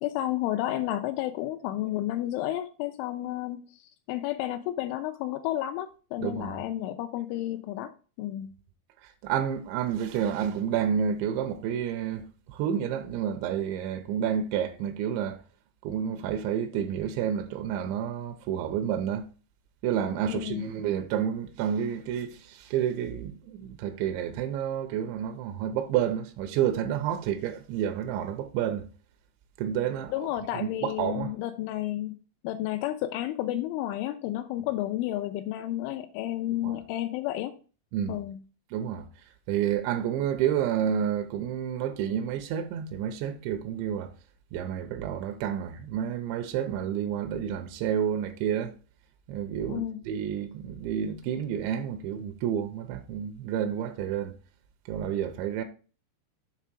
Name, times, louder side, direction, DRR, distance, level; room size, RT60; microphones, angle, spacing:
voice 1, 0.0-3.6 4.1-8.5 20.3-20.7 30.1-32.2 32.4-37.6 38.1-38.4 49.7-50.0, left 14 dB, 85° left, 3.0 m, -31 dB
voice 2, 6.2-6.6 9.0-15.4 15.8-19.3 19.8-28.9 29.6-30.3 30.5-31.3 36.6-36.8 37.9-38.2 38.7-39.1 39.5-44.1 44.5-48.7 49.3-54.3 54.9-55.6, right 9 dB, 85° right, 2.8 m, -30 dB
7.5 x 3.4 x 6.1 m
omnidirectional pair, 5.5 m